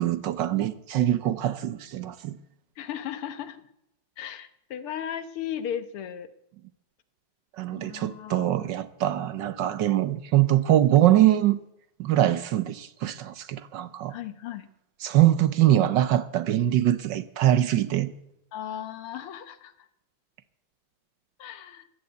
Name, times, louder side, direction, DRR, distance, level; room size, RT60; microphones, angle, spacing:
voice 1, 0.0-2.4 7.6-11.6 12.0-14.2 15.0-18.1, right 13 dB, 65° right, 1.2 m, -23 dB
voice 2, 2.8-3.6 4.2-6.3 7.7-8.7 14.1-14.7 18.5-19.9 21.4-21.9, left 9 dB, 85° left, 2.0 m, -36 dB
15.0 x 11.5 x 8.0 m
omnidirectional pair, 2.3 m